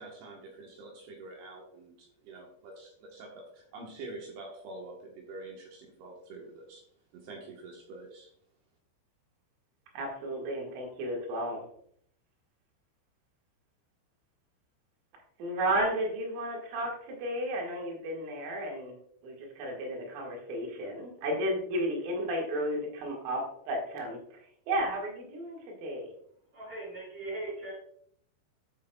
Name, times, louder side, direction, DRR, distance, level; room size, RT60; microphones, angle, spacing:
voice 1, 0.0-6.8 7.1-8.3, right 2 dB, 70° right, 0 dB, 2.9 m, -46 dB
voice 2, 9.9-11.6 15.4-19.0 19.2-26.1, right 1 dB, 90° right, -1 dB, 4.4 m, -33 dB
voice 3, 26.5-27.7, right 2 dB, 40° right, -8 dB, 3.7 m, -39 dB
14.0 x 6.1 x 2.3 m, 0.67 s
omnidirectional pair, 5.5 m